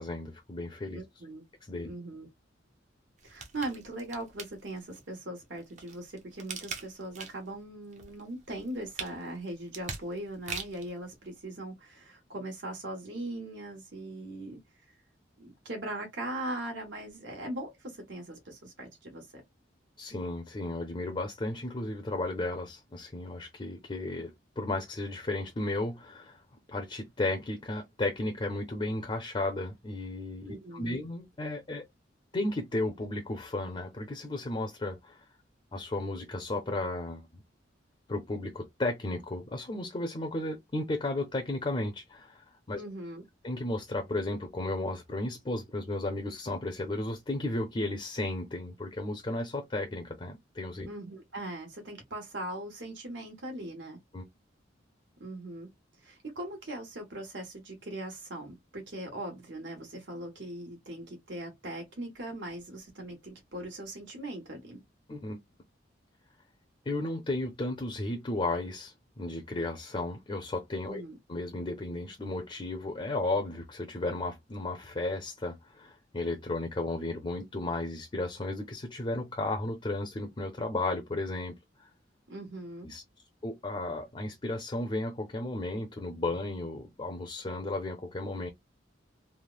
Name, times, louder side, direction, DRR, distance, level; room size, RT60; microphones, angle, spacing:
voice 1, 0.0-1.0 1.7-1.9 20.0-24.3 24.6-26.4 26.7-31.8 32.3-35.2 35.7-37.4 38.1-42.8 43.4-50.9 54.1-54.2 65.1-65.4 66.9-71.0 71.3-81.6 82.8-83.0 83.4-88.5, left 2 dB, 30° left, 0.5 m, -34 dB
voice 2, 0.9-1.4 1.8-2.3 3.2-14.6 15.4-19.4 30.5-31.0 42.7-43.2 50.8-54.0 55.2-55.7 56.0-64.8 70.8-71.2 82.3-82.9, right 1 dB, 75° right, 1.4 m, -40 dB
sound 1, 3.2-5.0 5.5-7.6 7.9-10.9 11.5-11.6, right 5 dB, 40° right, 0.7 m, -42 dB
3.3 x 2.0 x 2.4 m
head